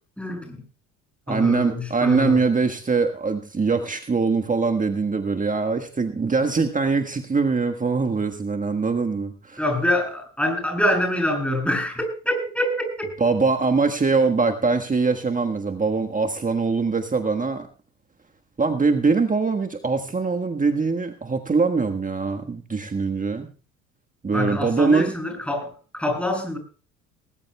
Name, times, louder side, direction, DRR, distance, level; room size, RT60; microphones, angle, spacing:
voice 1, 0.2-0.6 1.3-2.4 9.6-13.1 24.3-26.6, left 1 dB, 5° left, 3 dB, 8.0 m, -25 dB
voice 2, 1.3-9.6 13.2-17.7 18.6-23.5 24.2-25.1, right 4 dB, 20° right, 5 dB, 1.5 m, -22 dB
19.5 x 19.5 x 2.3 m, 0.37 s
figure-of-eight pair, 60°, 42 cm